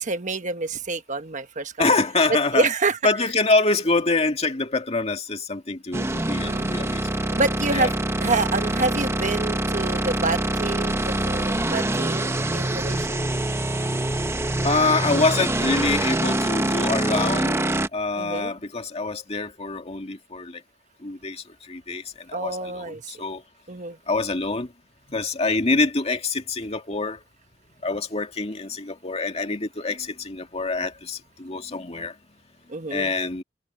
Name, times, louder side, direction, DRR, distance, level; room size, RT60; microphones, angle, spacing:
voice 1, 0.0-1.9 2.5-3.0 6.4-6.9 7.3-7.9 8.2-13.2 18.2-18.5 22.3-23.1 23.7-24.0 32.7-33.1, right 3 dB, 40° right, 1.2 m, -27 dB
voice 2, 1.8-2.7 3.0-7.0 7.7-7.9 14.6-17.6 17.9-20.6 21.0-23.4 24.1-24.7 25.1-27.2 27.8-32.1 32.9-33.4, left 3 dB, 35° left, 2.1 m, -25 dB
sound 1, 5.9-17.9, right 1 dB, 15° right, 0.8 m, -25 dB
head